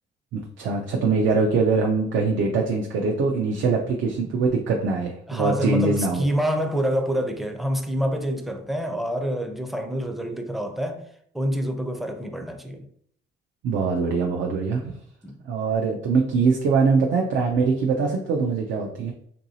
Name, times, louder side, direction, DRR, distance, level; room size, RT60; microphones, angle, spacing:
voice 1, 0.3-6.2 13.6-14.9 15.5-19.1, right 4 dB, 75° right, 0.5 m, -23 dB
voice 2, 5.3-11.0 11.3-12.9 15.2-15.4, equal, ahead, 0.4 m, -26 dB
3.0 x 2.6 x 2.7 m
cardioid pair, 90°, 20 cm